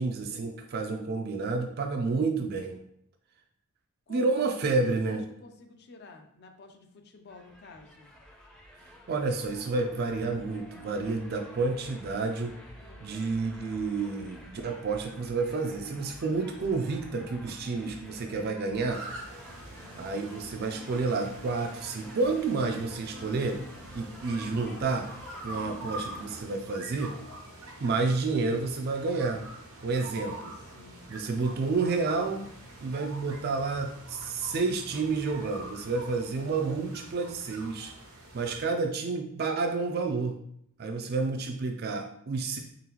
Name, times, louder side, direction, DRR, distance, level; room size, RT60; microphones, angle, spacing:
voice 1, 0.0-2.8 4.1-5.2 9.1-12.5 13.0-19.0 20.0-23.6 23.9-25.1 25.4-27.2 27.8-29.4 29.8-30.5 31.1-32.5 32.8-37.9 38.3-40.4 40.8-42.6, right 3 dB, 45° right, 3 dB, 0.4 m, -30 dB
voice 2, 4.1-8.1 12.8-13.1 29.8-31.1, left 3 dB, 50° left, 5 dB, 0.5 m, -51 dB
sound 1, 7.3-26.4, equal, 5° left, 0.5 m, -50 dB
sound 2, 18.9-38.6, right 1 dB, 85° right, 0.8 m, -45 dB
3.8 x 3.6 x 3.0 m, 0.73 s
head